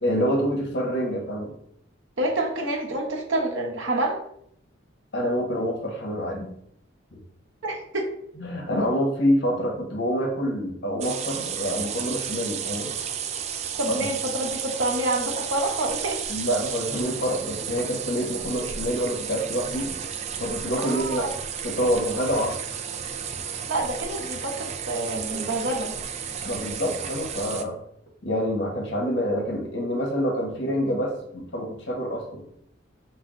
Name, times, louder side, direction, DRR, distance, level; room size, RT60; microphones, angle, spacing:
voice 1, 0.0-1.5 5.1-6.5 7.1-7.2 8.4-12.9 16.3-19.9 20.4-21.3 21.6-22.6 26.4-27.8 28.2-32.4, equal, 60° left, 0 dB, 1.3 m, -26 dB
voice 2, 2.2-4.2 7.6-8.1 13.8-16.2 20.8-21.3 23.7-26.0, right 1 dB, 85° right, 1 dB, 1.0 m, -27 dB
sound 1, 11.0-27.6, right 7 dB, 35° right, 0.3 m, -33 dB
5.5 x 2.1 x 3.7 m, 0.71 s
head